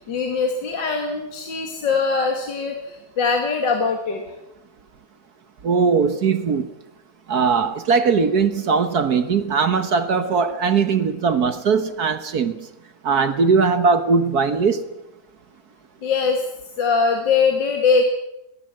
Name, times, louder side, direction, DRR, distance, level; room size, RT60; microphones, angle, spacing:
voice 1, 0.0-4.2 16.0-16.4 16.8-18.0, left 5 dB, 65° left, 2.7 m, -21 dB
voice 2, 5.6-6.7 7.3-12.5 13.0-14.8, right 5 dB, 55° right, 1.6 m, -19 dB
22.5 x 19.0 x 7.6 m
omnidirectional pair, 2.1 m